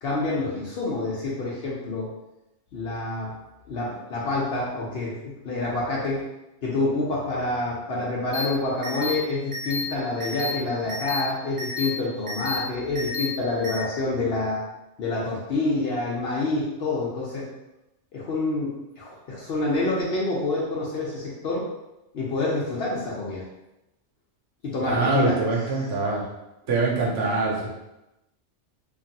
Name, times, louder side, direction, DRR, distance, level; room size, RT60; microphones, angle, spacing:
voice 1, 0.0-2.1 2.7-3.3 3.7-5.1 5.4-6.2 6.6-14.6 15.0-17.5 18.1-21.6 22.1-23.4 24.6-25.9, left 2 dB, 65° left, -5 dB, 0.8 m, -27 dB
sound 1, 8.3-8.5 8.8-9.1 9.5-9.8 10.2-10.5 10.9-11.2 11.6-11.9 12.3-12.6 12.9-13.3 13.6-13.8, left 3 dB, 40° right, 0.5 m, -31 dB
voice 2, 24.8-26.2 26.7-27.7, right 3 dB, 80° right, -3 dB, 1.1 m, -24 dB
3.0 x 2.5 x 2.7 m, 0.94 s
omnidirectional pair, 1.2 m